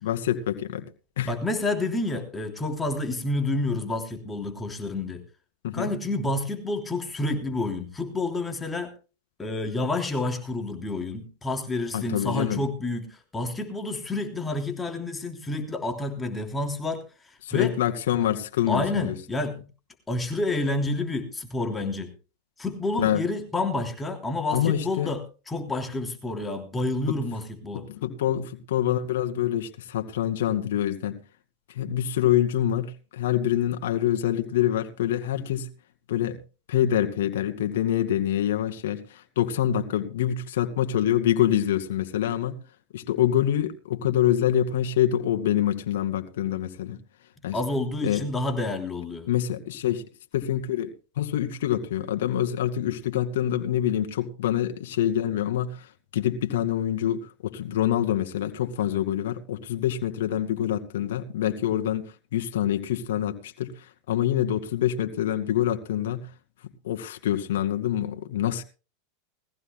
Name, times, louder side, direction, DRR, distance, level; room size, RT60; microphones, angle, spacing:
voice 1, 0.0-0.8 1.2-1.4 5.6-5.9 11.9-12.6 17.4-19.1 23.0-23.2 24.5-25.1 27.1-27.2 27.7-31.2 31.7-35.7 36.1-36.4 36.7-42.6 42.9-47.0 47.4-47.6 48.0-48.2 49.3-50.0 50.3-50.9 51.2-66.3 66.8-68.6, left 11 dB, 85° left, 2.2 m, -26 dB
voice 2, 1.3-5.2 5.7-8.9 9.4-17.0 17.5-17.7 18.7-19.6 20.1-22.1 22.6-27.9 47.5-49.3, left 2 dB, 15° left, 3.2 m, -29 dB
21.0 x 15.5 x 2.2 m
supercardioid pair, 130°, 0 cm